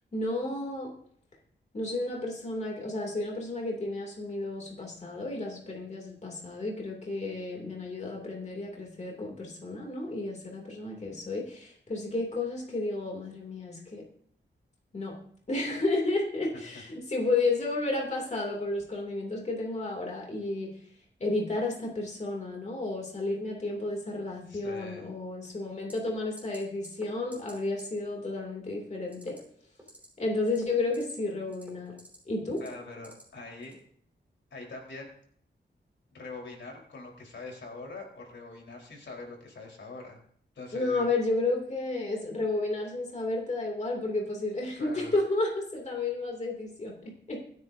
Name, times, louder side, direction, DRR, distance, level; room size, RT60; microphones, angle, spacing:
voice 1, 0.1-0.9 1.7-14.0 14.9-15.2 15.5-20.7 21.2-29.4 30.2-32.0 32.3-32.6 40.7-47.4, left 2 dB, 40° left, -1 dB, 2.8 m, -32 dB
voice 2, 24.5-25.1 32.6-33.8 34.5-35.1 36.1-40.2 40.6-41.1 44.8-45.1, left 3 dB, 85° left, 0 dB, 4.2 m, -43 dB
sound 1, 25.9-26.1 26.4-26.6 26.8-27.1 27.3-27.5 27.8-27.9 29.1-29.4 29.8-30.1 30.4-31.1 31.5-32.2 32.6-33.2 33.6-33.8, right 1 dB, 10° right, 5.1 m, -48 dB
26.0 x 9.3 x 2.7 m, 0.62 s
wide cardioid pair, 175°, 19 cm